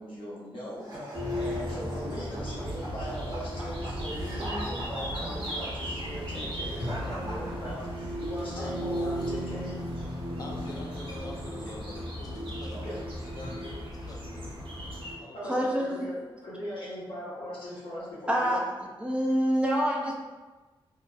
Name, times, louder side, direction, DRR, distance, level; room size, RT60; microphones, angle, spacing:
voice 1, 0.0-9.7 12.7-13.0 15.3-16.2 16.4-18.6, equal, 65° left, 0.8 m, -39 dB
sound 1, 0.8-8.2, equal, 40° right, 0.8 m, -42 dB
sound 2, 1.1-15.1, equal, 70° right, 0.7 m, -35 dB
sound 3, 6.7-7.9 8.2-13.8, left 1 dB, 85° left, 1.2 m, -46 dB
voice 2, 8.6-9.3 10.4-14.6 15.2-15.9, left 2 dB, 40° left, 0.4 m, -44 dB
voice 3, 15.5-16.1 18.3-18.6 19.0-20.1, equal, 10° right, 0.5 m, -26 dB
2.6 x 2.0 x 2.3 m
cardioid pair, 80°, 9 cm